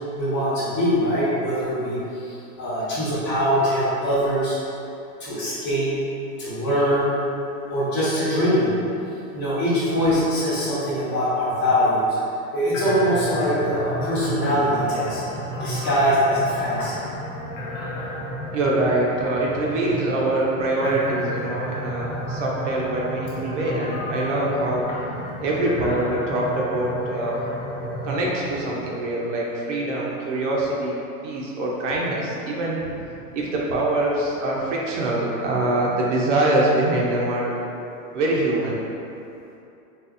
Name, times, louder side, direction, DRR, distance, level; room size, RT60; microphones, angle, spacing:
voice 1, 0.2-4.6 5.2-5.9 6.4-7.1 7.7-8.7 9.3-12.2 12.5-15.2 15.6-16.9, equal, 25° left, -9 dB, 1.1 m, -22 dB
sound 1, 12.7-28.9, equal, 55° left, 1.0 m, -32 dB
voice 2, 18.5-24.9 25.4-27.4 28.0-30.9 31.2-32.8 33.3-37.6 38.1-38.8, right 2 dB, 55° right, -4 dB, 0.7 m, -24 dB
4.2 x 3.0 x 2.5 m, 2.8 s
hypercardioid pair, 140°, 44 cm